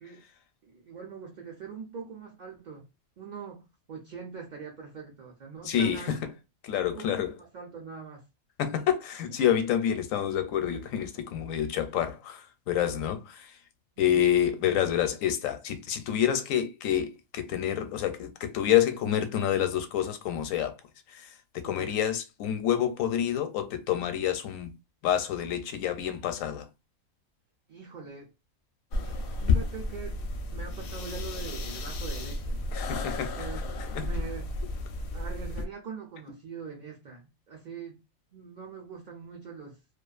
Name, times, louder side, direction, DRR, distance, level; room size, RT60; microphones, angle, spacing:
voice 1, 0.6-2.9 3.2-6.3 6.8-8.3 14.1-14.3 21.6-22.0 27.7-28.3 29.0-30.2 30.5-32.6 33.0-34.5 35.1-38.0 38.3-39.8, right 5 dB, 55° right, 0.5 m, -43 dB
voice 2, 5.6-6.2 6.6-7.3 8.6-13.6 14.0-20.7 21.1-24.7 25.0-26.7 32.7-33.5 33.9-34.1, left 10 dB, 85° left, 1.0 m, -28 dB
sound 1, 28.9-35.6, left 3 dB, 65° left, 0.6 m, -32 dB
2.4 x 2.3 x 2.3 m
omnidirectional pair, 1.3 m